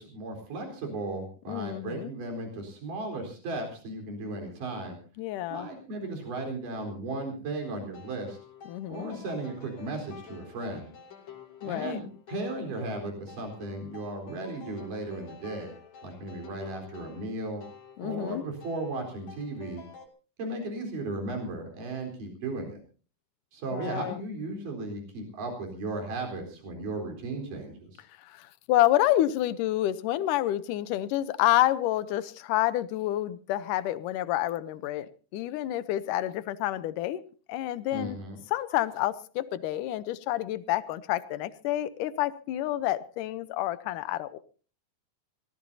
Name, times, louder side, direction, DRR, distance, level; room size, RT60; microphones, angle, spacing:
voice 1, 0.0-5.0 5.5-8.4 8.9-10.9 11.6-15.7 16.0-17.6 18.0-19.8 20.4-22.8 23.5-28.0 37.9-38.4, right 2 dB, 65° right, 3 dB, 5.7 m, -36 dB
voice 2, 1.5-2.1 5.2-5.7 8.7-9.2 11.6-12.0 18.0-18.4 23.7-24.2 28.3-37.2 37.5-38.2 38.5-44.4, left 14 dB, 75° left, 15 dB, 2.2 m, -28 dB
sound 1, 7.6-20.1, left 6 dB, 50° left, 3.3 m, -49 dB
24.5 x 18.0 x 2.8 m, 0.37 s
omnidirectional pair, 4.1 m